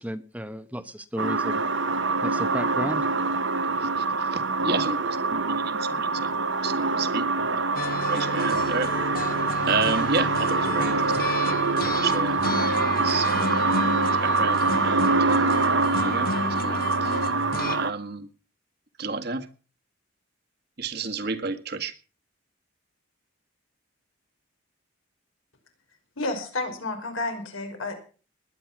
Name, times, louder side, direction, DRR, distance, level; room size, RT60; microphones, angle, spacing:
voice 1, 0.0-1.6 2.2-3.0, equal, 5° right, 11 dB, 0.9 m, -33 dB
sound 1, 1.2-17.9, right 3 dB, 65° right, 1.0 m, -25 dB
voice 2, 3.8-6.3 6.6-7.3 7.5-7.8 8.1-8.9 9.2-12.4 12.7-15.6 15.9-16.3 16.6-17.2 17.7-18.3 19.0-19.5 20.8-21.9, right 4 dB, 50° right, 6 dB, 1.8 m, -32 dB
sound 2, 7.8-17.8, left 3 dB, 45° left, 1.3 m, -32 dB
voice 3, 26.2-27.9, left 2 dB, 90° left, 5 dB, 5.3 m, -30 dB
20.5 x 9.9 x 6.1 m, 0.38 s
head